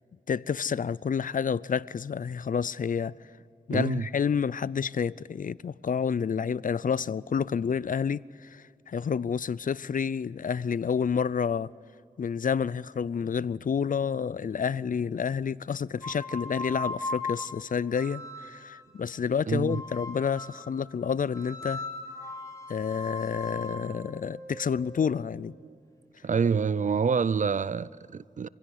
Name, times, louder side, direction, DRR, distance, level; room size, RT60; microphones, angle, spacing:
voice 1, 0.3-3.2 3.7-11.7 12.2-21.8 22.7-25.5, left 6 dB, 60° left, 0.5 m, -29 dB
voice 2, 3.7-4.1 19.5-19.8 25.6-25.7 26.2-28.5, right 5 dB, 55° right, 0.5 m, -27 dB
sound 1, 16.0-18.8 19.7-20.7 21.3-25.3, left 2 dB, 20° left, 4.5 m, -38 dB
26.0 x 16.5 x 9.7 m
cardioid pair, 55°, 16 cm